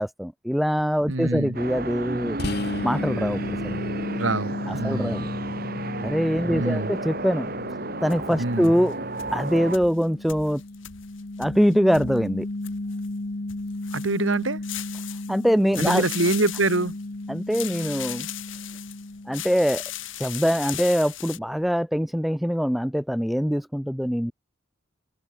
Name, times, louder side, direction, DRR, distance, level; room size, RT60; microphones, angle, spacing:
voice 1, 0.0-2.4 2.8-3.8 4.7-5.3 6.0-7.5 8.0-8.9 9.3-10.6 11.4-12.5 15.3-16.0 17.3-18.3 19.3-19.8 20.2-24.3, equal, ahead, 0.4 m, -23 dB
voice 2, 1.1-1.6 4.1-5.2 6.5-7.0 8.4-8.7 13.9-14.6 15.8-16.9, right 2 dB, 75° right, 2.1 m, -25 dB
sound 1, 1.5-9.8, right 2 dB, 45° right, 2.4 m, -33 dB
sound 2, 2.4-19.9, left 2 dB, 50° left, 1.0 m, -34 dB
sound 3, 8.1-8.9 9.2-13.1 13.5-15.5 15.7-17.0 17.5-19.1 19.3-21.4, left 13 dB, 70° left, 3.7 m, -37 dB
open air
head